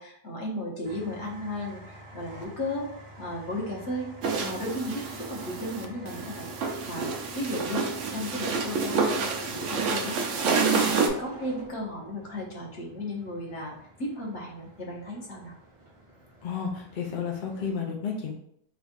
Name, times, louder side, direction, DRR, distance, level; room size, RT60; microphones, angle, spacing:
voice 1, 0.0-2.9 3.2-4.1 4.4-7.1 7.3-7.8 8.1-15.5, left 1 dB, 50° left, -2 dB, 1.1 m, -35 dB
sound 1, 0.8-17.8, right 1 dB, 35° right, 0.5 m, -48 dB
sound 2, 4.2-11.1, right 5 dB, 70° right, 0.7 m, -28 dB
voice 2, 16.4-18.3, left 6 dB, 70° left, -1 dB, 0.4 m, -32 dB
3.4 x 2.4 x 3.9 m, 0.70 s
omnidirectional pair, 1.8 m